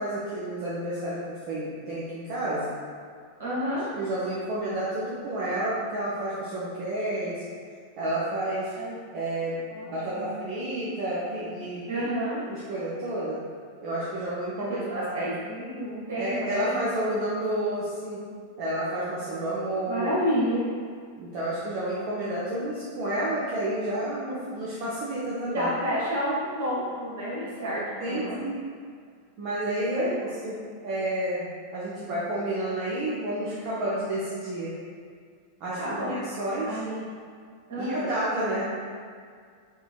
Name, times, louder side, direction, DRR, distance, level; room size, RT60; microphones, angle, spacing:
voice 1, 0.0-2.7 4.0-7.4 8.0-8.7 9.1-9.6 9.8-12.1 12.5-13.3 13.8-15.1 16.2-18.2 18.6-20.1 21.2-25.7 28.0-28.6 29.4-30.1 30.4-30.5 30.8-34.7 35.6-36.8 37.8-38.7, right 1 dB, 45° right, -9 dB, 0.6 m, -30 dB
voice 2, 3.4-3.9 8.8-9.0 9.7-10.3 11.9-12.4 14.6-16.8 19.7-20.6 25.5-28.5 29.9-30.1 35.8-36.2 36.7-37.0 37.7-38.1, equal, 60° right, -8 dB, 1.2 m, -30 dB
3.6 x 2.9 x 2.4 m, 2.1 s
figure-of-eight pair, 90°, 0 cm